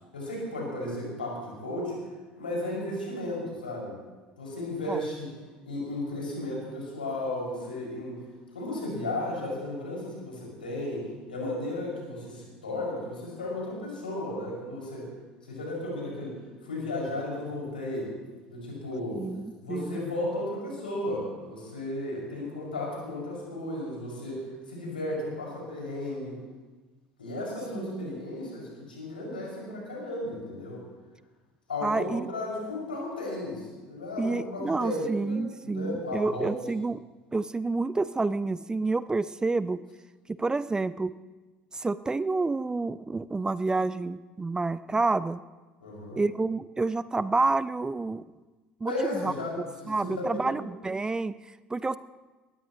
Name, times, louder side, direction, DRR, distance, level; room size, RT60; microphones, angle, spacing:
voice 1, 0.1-2.0 2.3-3.9 4.4-5.3 5.6-8.2 8.5-15.1 15.5-16.3 16.6-18.1 18.5-19.2 19.6-24.4 24.7-26.4 27.2-30.8 31.7-36.6 45.8-46.2 48.9-50.6, left 1 dB, 80° left, -3 dB, 6.1 m, -34 dB
voice 2, 19.2-20.0 27.7-28.2 31.8-32.3 34.2-37.0 37.3-39.8 40.3-41.1 41.7-45.4 46.1-48.2 48.8-49.3 49.9-51.4 51.7-52.0, right 3 dB, 15° right, 17 dB, 0.5 m, -29 dB
21.5 x 19.0 x 3.1 m, 1.2 s
figure-of-eight pair, 65°, 5 cm